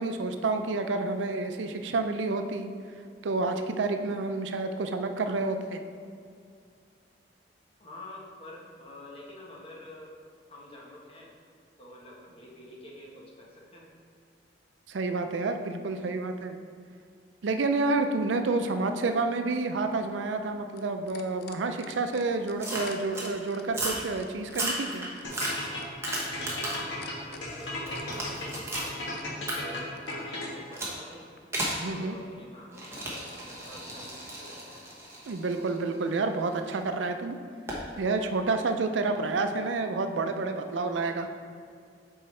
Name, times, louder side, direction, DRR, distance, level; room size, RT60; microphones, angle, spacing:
voice 1, 0.0-2.7 3.2-5.8 14.9-16.6 17.4-25.1 31.8-32.2 35.3-37.4 38.0-41.3, right 3 dB, 90° right, 7 dB, 0.5 m, -29 dB
voice 2, 7.8-10.1 10.5-11.3 11.8-13.9 26.6-29.0 29.4-31.3 31.8-34.8, left 1 dB, 30° left, -3 dB, 1.2 m, -47 dB
sound 1, 19.6-30.2 31.4-31.5, left 7 dB, 60° left, 0.5 m, -49 dB
sound 2, 22.6-23.3 23.7-24.1 24.5-26.9 27.3-28.9 29.5-29.6 30.7-31.0 31.5-31.8 32.7-36.7 37.7-37.9, right 1 dB, 15° right, 1.1 m, -34 dB
sound 3, 25.2-30.8, left 2 dB, 85° left, 1.4 m, -36 dB
7.7 x 4.6 x 3.2 m, 2.3 s
head